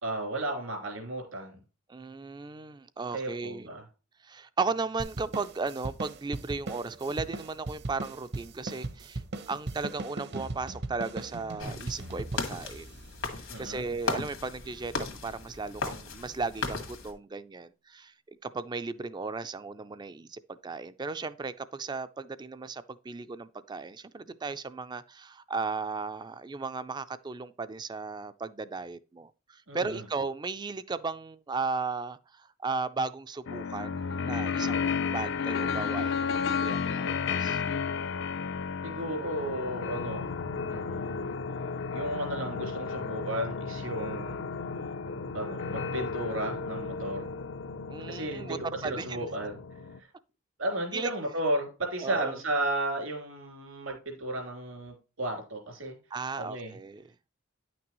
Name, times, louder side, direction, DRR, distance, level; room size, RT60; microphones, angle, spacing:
voice 1, 0.0-1.6 3.1-3.8 13.5-13.8 29.7-30.0 38.8-40.4 40.7-41.4 41.9-44.4 45.3-47.3 48.1-48.6 48.8-49.6 50.6-56.0 56.4-56.8, right 1 dB, 85° right, 3.2 m, -34 dB
voice 2, 1.9-3.7 4.2-9.2 9.5-12.9 13.4-18.1 18.4-37.6 47.9-49.3 50.9-51.1 52.0-52.4 56.1-57.1, right 4 dB, 20° right, 0.4 m, -36 dB
sound 1, 5.0-13.8, right 2 dB, 55° right, 0.8 m, -39 dB
sound 2, 11.6-17.1, left 3 dB, 80° left, 1.8 m, -37 dB
sound 3, 33.5-50.0, left 5 dB, 60° left, 0.5 m, -33 dB
9.8 x 6.0 x 3.0 m
head